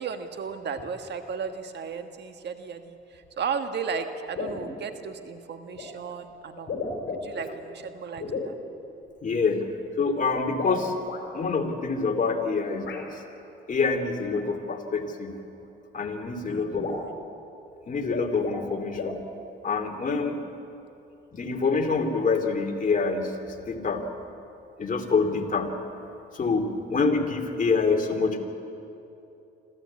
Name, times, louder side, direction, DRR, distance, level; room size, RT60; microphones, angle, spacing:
voice 1, 0.0-6.7 7.2-8.6 16.4-17.2, right 6 dB, 60° right, 7 dB, 1.5 m, -35 dB
sound 1, 3.2-3.3 3.9-4.1 4.4-4.7 5.8-5.9 6.6-7.5 8.2-8.5 10.5-11.2 12.9-13.0 14.3-14.4 15.6-15.7 16.1-16.2 16.4-16.5 16.7-17.1 18.0-18.7 19.0-19.2, left 3 dB, 55° left, 4.7 m, -34 dB
voice 2, 9.2-9.6 10.0-10.9 11.3-13.2 13.7-15.3 15.9-16.9 17.9-19.2 19.6-20.4 21.3-24.0 24.8-25.7 26.3-28.4, left 4 dB, 40° left, 4 dB, 2.6 m, -26 dB
26.0 x 14.5 x 8.6 m, 2.8 s
cardioid pair, 90°, 20 cm